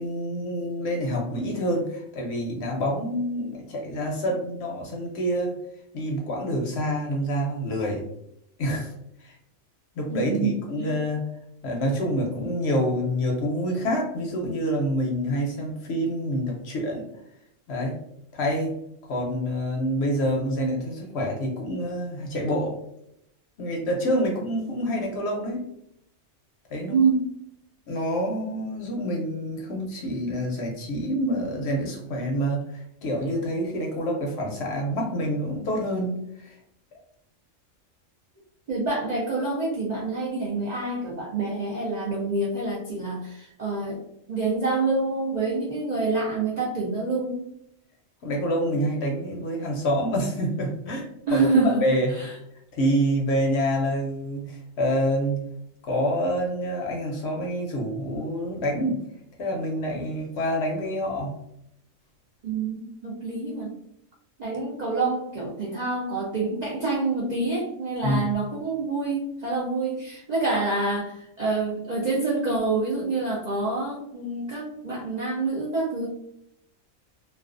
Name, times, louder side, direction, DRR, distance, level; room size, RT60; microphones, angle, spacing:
voice 1, 0.0-5.5 5.9-8.1 8.6-8.9 9.2-9.3 10.0-11.2 11.6-17.1 17.7-18.0 18.3-18.7 19.1-22.8 23.6-25.6 26.7-27.0 27.9-36.6 48.2-52.1 52.7-55.4 55.8-59.0 59.4-61.4 68.0-68.2, equal, 65° left, 0 dB, 0.7 m, -27 dB
voice 2, 10.1-10.9 26.9-27.3 38.7-44.0 44.3-47.5 51.3-52.3 62.4-63.7 64.4-76.1, right 3 dB, 60° right, -5 dB, 0.4 m, -27 dB
2.3 x 2.3 x 2.4 m, 0.77 s
omnidirectional pair, 1.4 m